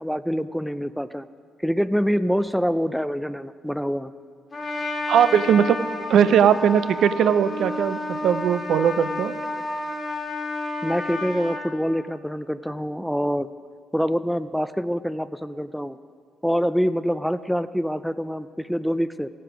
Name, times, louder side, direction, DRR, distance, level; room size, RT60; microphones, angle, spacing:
voice 1, 0.0-1.3 1.6-4.1 10.8-13.5 13.9-16.0 16.4-19.3, equal, ahead, 14 dB, 0.3 m, -25 dB
Trumpet, 4.5-11.6, left 2 dB, 30° left, 1.6 m, -31 dB
voice 2, 5.1-5.8 6.1-9.3, right 8 dB, 70° right, 12 dB, 0.4 m, -19 dB
15.0 x 7.6 x 5.1 m, 2.1 s
cardioid pair, 90°, 0 cm